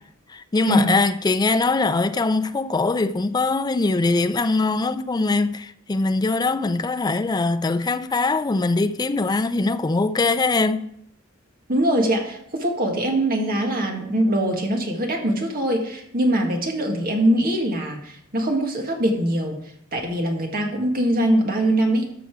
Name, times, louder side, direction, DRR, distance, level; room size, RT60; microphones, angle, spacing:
voice 1, 0.3-10.9, left 3 dB, 20° left, 0.4 m, -22 dB
voice 2, 11.7-19.6 19.9-22.1, right 1 dB, 45° right, 1.9 m, -22 dB
13.5 x 6.0 x 4.8 m
head